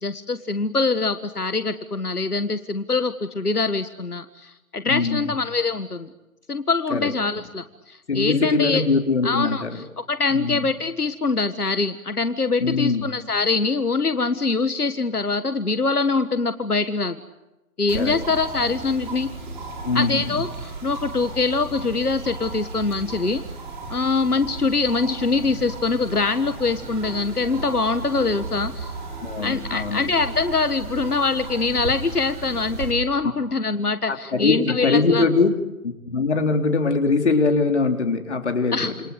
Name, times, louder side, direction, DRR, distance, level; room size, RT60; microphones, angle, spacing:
voice 1, 0.0-6.1 6.5-8.8 9.2-17.2 17.8-19.3 19.9-23.4 23.9-28.9 29.4-35.3 38.7-38.9, left 4 dB, 90° left, 11 dB, 1.7 m, -24 dB
voice 2, 4.9-5.3 6.9-7.1 8.1-9.8 10.3-10.7 12.6-13.1 17.9-18.2 19.8-20.4 29.2-30.0 34.1-35.5 35.8-39.0, left 4 dB, 50° left, 5 dB, 3.8 m, -22 dB
sound 1, 17.9-32.9, right 3 dB, 35° right, 7.2 m, -35 dB
28.0 x 26.0 x 8.2 m, 0.99 s
figure-of-eight pair, 160°, 44 cm